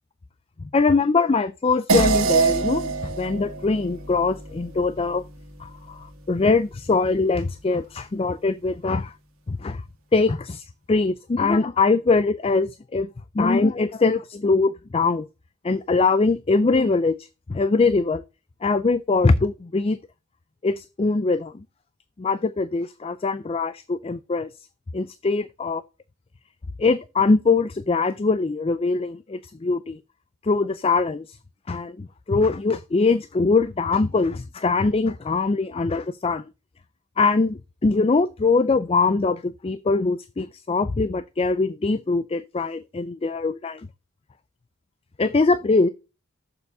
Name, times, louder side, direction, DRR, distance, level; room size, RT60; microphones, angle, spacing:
voice 1, 0.7-2.9 3.2-5.2 5.6-9.1 9.5-9.8 10.1-13.1 13.3-15.3 15.6-17.2 17.5-18.2 18.6-20.0 20.6-21.6 22.2-24.5 24.9-25.8 26.8-30.0 30.4-31.4 31.7-36.4 37.2-43.9 45.2-45.9, left 3 dB, 25° left, 0.4 m, -22 dB
sound 1, 1.9-6.6, right 4 dB, 80° right, 2.1 m, -26 dB
7.0 x 6.8 x 5.4 m
head